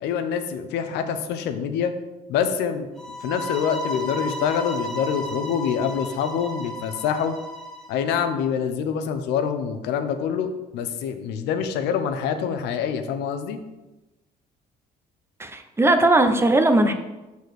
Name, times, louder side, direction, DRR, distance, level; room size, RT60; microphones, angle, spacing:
voice 1, 0.0-1.9 2.3-2.9 3.2-7.4 7.9-13.6, left 7 dB, 85° left, 8 dB, 0.8 m, -26 dB
sound 1, 3.0-8.0, left 1 dB, 5° left, 1.3 m, -34 dB
voice 2, 15.4-16.9, right 2 dB, 15° right, 7 dB, 0.7 m, -18 dB
6.4 x 4.2 x 6.5 m, 1.1 s
cardioid pair, 110°, 17 cm